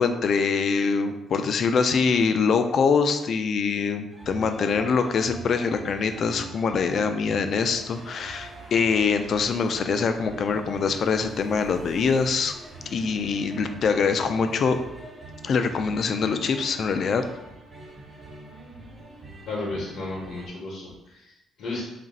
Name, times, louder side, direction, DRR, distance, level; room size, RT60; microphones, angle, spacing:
voice 1, 0.0-12.6 12.9-14.8 15.4-17.2, left 5 dB, 60° left, 8 dB, 0.3 m, -24 dB
sound 1, 4.1-20.5, right 2 dB, 30° right, 1.0 m, -44 dB
voice 2, 19.4-21.8, left 2 dB, 80° left, -4 dB, 0.8 m, -34 dB
3.0 x 2.5 x 4.0 m, 0.93 s
cardioid pair, 90°, 0 cm